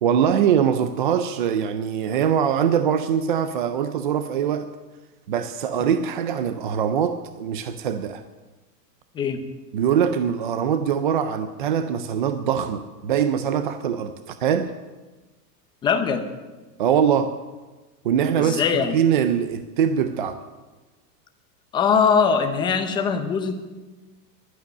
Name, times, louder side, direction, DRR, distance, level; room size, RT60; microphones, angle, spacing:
voice 1, 0.0-4.7 5.3-8.2 9.7-14.7 16.8-17.4 18.0-18.6 18.9-20.4, right 8 dB, 35° right, 10 dB, 0.4 m, -22 dB
voice 2, 15.8-16.3 18.4-19.0 21.7-23.5, left 6 dB, 10° left, 7 dB, 0.6 m, -21 dB
12.0 x 10.5 x 9.5 m, 1.2 s
supercardioid pair, 160°, 49 cm